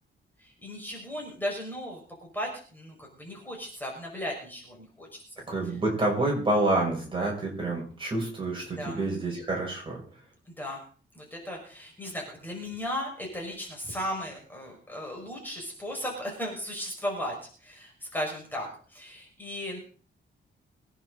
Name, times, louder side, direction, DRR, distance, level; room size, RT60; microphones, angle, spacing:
voice 1, 0.4-5.2 8.8-9.0 10.6-10.8 11.2-17.3 17.6-19.8, equal, 10° left, -1 dB, 5.5 m, -36 dB
voice 2, 5.5-10.0, right 2 dB, 25° right, -2 dB, 6.6 m, -28 dB
23.5 x 10.5 x 4.0 m, 0.41 s
wide cardioid pair, 155°, 20 cm